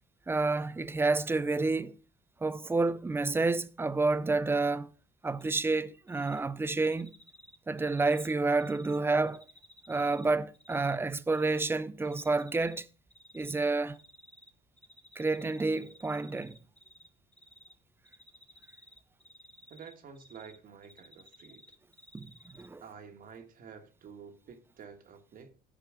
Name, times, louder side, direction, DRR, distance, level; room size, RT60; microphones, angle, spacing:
voice 1, 0.3-1.9 2.4-4.9 5.2-7.1 7.7-9.4 9.9-12.9 13.3-14.0 15.2-16.6 22.1-22.3 22.6-22.8, right 3 dB, 15° right, 0.5 m, -29 dB
Cricket, 5.4-5.8 6.1-6.4 6.8-9.0 9.3-11.0 11.3-11.6 12.0-12.8 13.1-14.5 14.8-17.1 17.3-17.7 18.1-20.6 20.8-22.7, equal, 5° left, 1.1 m, -56 dB
voice 2, 19.7-21.6 22.8-25.5, right 6 dB, 55° right, 1.5 m, -50 dB
12.5 x 5.1 x 4.9 m
cardioid pair, 110°, 17 cm